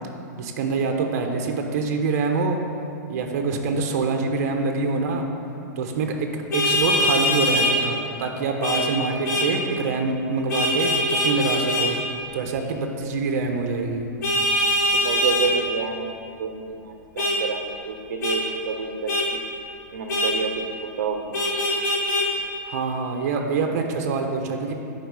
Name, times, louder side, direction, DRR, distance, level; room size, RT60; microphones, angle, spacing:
voice 1, 0.4-2.6 3.1-5.3 5.8-12.0 12.3-14.1 22.7-24.7, right 4 dB, 55° right, 3 dB, 1.0 m, -25 dB
Vehicle horn car horn honking, 6.5-7.7 8.6-8.8 9.2-9.5 10.5-11.9 14.2-15.5 17.2-17.4 18.2-18.4 19.1-19.3 20.1-20.3 21.3-22.3, left 1 dB, 70° left, 1.9 m, -22 dB
voice 2, 15.0-19.1 19.9-20.5 20.8-21.4, right 5 dB, 85° right, 4 dB, 0.8 m, -29 dB
10.5 x 4.8 x 4.8 m, 2.6 s
supercardioid pair, 160°, 10 cm